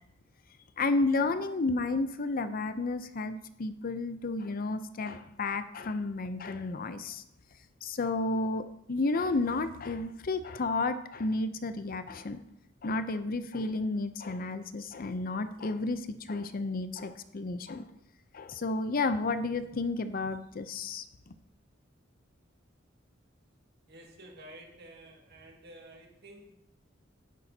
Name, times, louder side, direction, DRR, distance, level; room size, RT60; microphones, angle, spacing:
voice 1, 0.8-7.2 7.8-12.4 12.8-17.9 18.3-21.0, left 3 dB, 45° left, 11 dB, 0.6 m, -32 dB
voice 2, 23.9-26.5, right 1 dB, 55° right, 0 dB, 2.0 m, -51 dB
11.0 x 10.0 x 2.8 m, 0.80 s
head